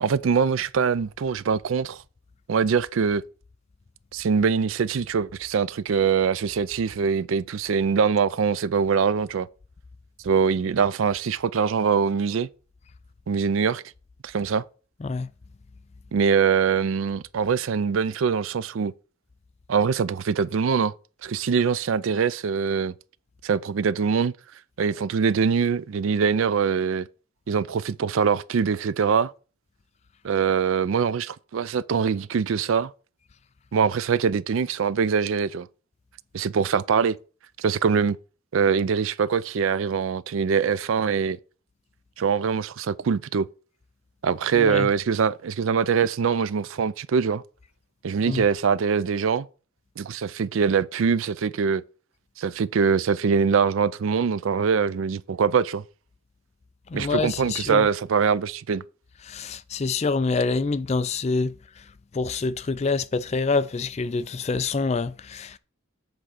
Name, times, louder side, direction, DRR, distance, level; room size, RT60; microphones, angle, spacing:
voice 1, 0.0-2.0 2.5-3.2 4.1-9.5 10.2-12.5 13.3-13.8 14.2-14.6 16.1-18.9 19.7-20.9 21.2-22.9 23.4-24.3 24.8-27.1 27.5-29.3 30.2-32.9 33.7-35.7 36.3-37.2 37.6-38.2 38.5-41.4 42.2-43.5 44.2-47.4 48.0-49.5 50.0-51.8 52.4-55.8 56.9-58.8, right 6 dB, 70° right, 0.4 m, -23 dB
voice 2, 44.5-44.9 48.3-48.5 56.9-57.9 59.2-61.9 62.1-65.6, left 4 dB, 30° left, 0.3 m, -26 dB
8.0 x 3.7 x 6.4 m
head